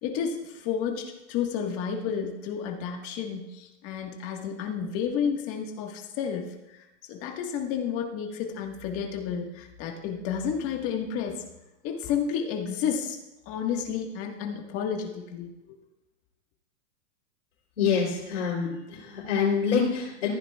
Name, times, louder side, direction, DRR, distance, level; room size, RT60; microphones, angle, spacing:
voice 1, 0.0-11.4 11.8-13.2 13.5-15.8, left 7 dB, 40° left, 2 dB, 1.7 m, -31 dB
voice 2, 17.8-20.3, left 6 dB, 85° left, -7 dB, 3.6 m, -26 dB
15.0 x 9.4 x 2.4 m, 0.95 s
supercardioid pair, 140°, 36 cm